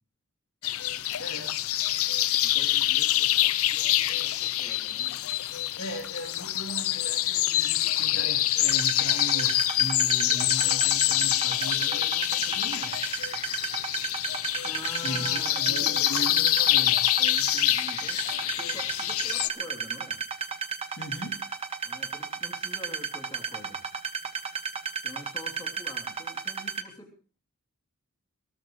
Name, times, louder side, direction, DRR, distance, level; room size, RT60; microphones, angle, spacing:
sound 1, 0.6-19.5, left 14 dB, 75° left, 0.7 m, -26 dB
voice 1, 1.2-1.6 5.7-13.0 15.0-17.0 21.0-21.4, equal, 60° left, 3 dB, 2.6 m, -38 dB
voice 2, 2.4-5.2 14.6-16.1 17.2-20.2 21.8-23.9 25.0-27.1, left 1 dB, 20° left, 1 dB, 3.0 m, -45 dB
sound 2, 8.6-26.8, right 6 dB, 25° right, 1.5 m, -33 dB
20.5 x 18.5 x 3.1 m, 0.36 s
head